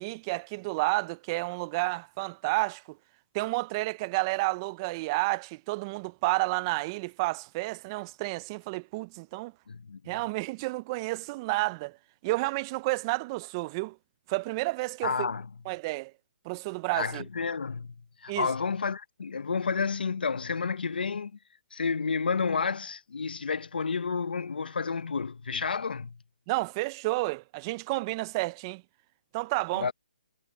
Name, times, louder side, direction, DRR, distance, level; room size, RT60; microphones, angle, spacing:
voice 1, 0.0-3.0 3.3-9.5 10.1-12.0 12.2-14.0 14.3-15.3 15.7-16.1 16.4-17.2 18.3-18.5 26.5-28.8 29.3-29.9, right 23 dB, 25° right, 0.5 m, -31 dB
voice 2, 9.7-10.0 15.0-15.5 16.9-17.9 18.2-21.3 21.7-26.2 29.8-29.9, left 5 dB, 75° left, 1.0 m, -30 dB
hypercardioid pair, 150°, 5 cm